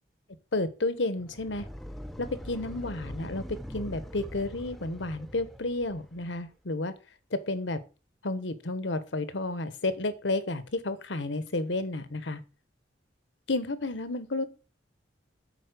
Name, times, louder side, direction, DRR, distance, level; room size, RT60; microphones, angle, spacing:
voice 1, 0.5-1.7 2.2-6.9 7.3-7.8 8.2-12.4 13.5-14.5, left 2 dB, 75° left, 13 dB, 1.1 m, -31 dB
sound 1, 1.2-6.4, equal, ahead, 0.6 m, -43 dB
9.4 x 4.3 x 6.6 m, 0.34 s
head